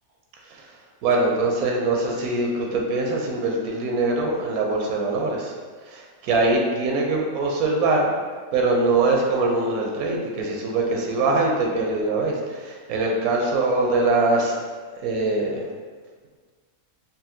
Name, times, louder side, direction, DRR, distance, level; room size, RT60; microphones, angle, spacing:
voice 1, 1.0-5.5 5.9-8.1 8.5-14.5 15.0-15.6, right 2 dB, 85° right, 0 dB, 1.0 m, -23 dB
4.0 x 2.2 x 2.7 m, 1.5 s
omnidirectional pair, 1.5 m